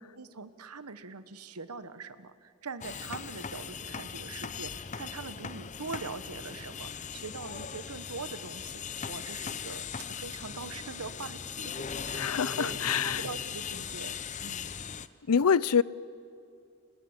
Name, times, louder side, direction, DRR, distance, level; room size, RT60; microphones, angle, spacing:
voice 1, 0.2-11.7 12.0-14.7, right 4 dB, 85° right, 12 dB, 1.2 m, -43 dB
sound 1, 2.8-15.1, left 7 dB, 35° left, 0.7 m, -38 dB
voice 2, 12.1-13.2 15.3-15.8, left 6 dB, 85° left, 20 dB, 0.6 m, -25 dB
29.5 x 26.0 x 7.3 m, 2.5 s
head